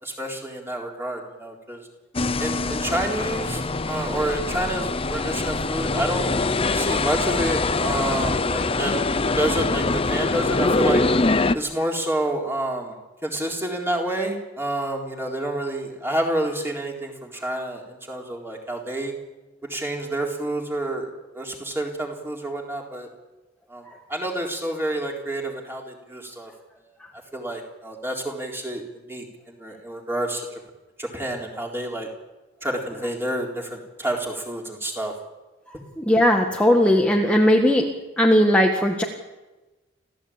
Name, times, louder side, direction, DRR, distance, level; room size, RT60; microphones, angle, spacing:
voice 1, 0.0-1.8 2.4-6.3 6.7-8.9 9.4-11.0 11.5-13.0 13.2-19.1 19.7-23.1 23.7-23.8 24.1-26.5 27.3-28.8 29.1-30.5 31.0-32.1 32.6-35.1, right 1 dB, 10° right, 0 dB, 3.9 m, -28 dB
sound 1, 2.1-11.5, left 3 dB, 30° left, 0.8 m, -23 dB
voice 2, 36.0-37.9 38.2-39.0, equal, 5° left, 1 dB, 1.6 m, -18 dB
27.5 x 16.0 x 8.8 m, 1.1 s
head